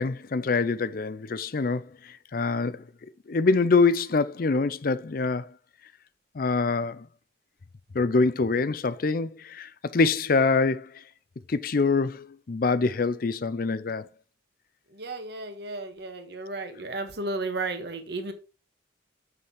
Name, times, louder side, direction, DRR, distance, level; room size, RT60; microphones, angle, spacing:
voice 1, 0.0-2.8 3.3-5.5 6.3-7.1 7.9-11.0 11.5-14.1, left 4 dB, 45° left, 0.5 m, -25 dB
voice 2, 14.9-18.3, right 2 dB, 55° right, 1.4 m, -33 dB
7.4 x 6.6 x 3.5 m
head